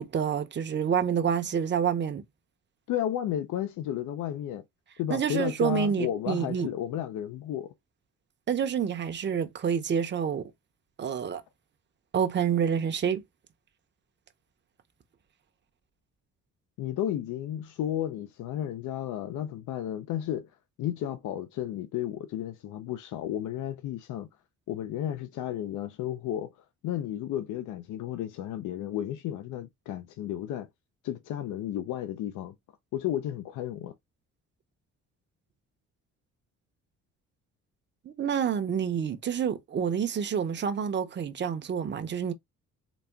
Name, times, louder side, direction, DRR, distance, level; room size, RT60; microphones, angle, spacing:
voice 1, 0.0-2.2 5.1-6.7 8.5-10.4 11.0-11.4 12.1-13.2 38.1-42.3, right 7 dB, 35° right, 0.7 m, -28 dB
voice 2, 2.9-4.6 5.0-7.7 16.8-20.5 20.8-24.3 24.7-26.5 26.8-30.7 31.0-32.5 32.9-33.9, left 11 dB, 80° left, 0.6 m, -33 dB
4.1 x 2.2 x 3.4 m
cardioid pair, 90°, 30 cm